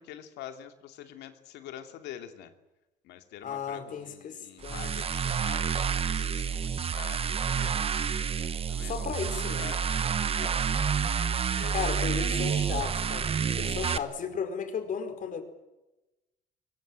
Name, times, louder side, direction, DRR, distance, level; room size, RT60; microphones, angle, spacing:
voice 1, 0.0-2.5 3.0-7.9 8.7-9.1 9.4-10.8 11.5-12.3, left 11 dB, 80° left, 7 dB, 2.7 m, -45 dB
voice 2, 3.4-5.1 8.4-9.7 11.7-13.3 13.6-15.4, left 7 dB, 50° left, 7 dB, 4.7 m, -35 dB
sound 1, 4.6-14.0, right 7 dB, 35° right, 1.1 m, -29 dB
22.5 x 20.0 x 9.0 m, 1.0 s
cardioid pair, 110°, 17 cm